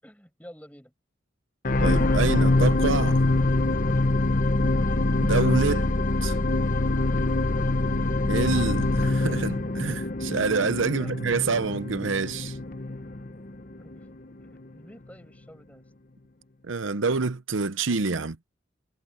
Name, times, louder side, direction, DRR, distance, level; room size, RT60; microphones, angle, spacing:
voice 1, 0.0-0.9 10.9-11.1 13.8-15.9, equal, 5° left, 7.3 m, -51 dB
sound 1, 1.6-14.0 14.6-14.7, left 2 dB, 40° left, 0.9 m, -24 dB
voice 2, 1.8-3.2 5.2-5.9 6.2-6.4 8.3-12.6 16.6-18.4, right 4 dB, 75° right, 0.8 m, -27 dB
head